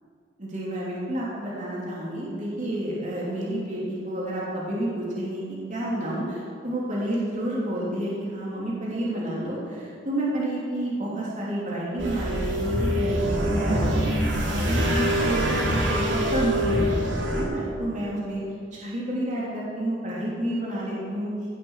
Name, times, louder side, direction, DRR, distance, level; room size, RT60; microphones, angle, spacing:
voice 1, 0.4-18.4 18.7-21.3, right 1 dB, 40° right, -6 dB, 3.2 m, -30 dB
sound 1, 12.0-17.4, equal, 90° right, 3.3 m, -24 dB
16.5 x 8.4 x 7.4 m, 2.3 s
head